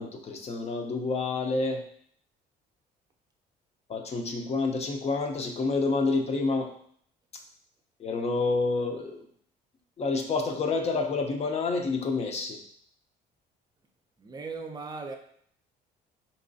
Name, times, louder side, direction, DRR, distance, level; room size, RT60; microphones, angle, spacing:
voice 1, 0.0-1.8 3.9-6.7 8.0-9.2 10.0-12.6, left 3 dB, 40° left, 4 dB, 0.6 m, -28 dB
voice 2, 14.2-15.2, right 4 dB, 25° right, 5 dB, 0.5 m, -38 dB
4.1 x 3.0 x 2.6 m, 0.62 s
cardioid pair, 110°, 17 cm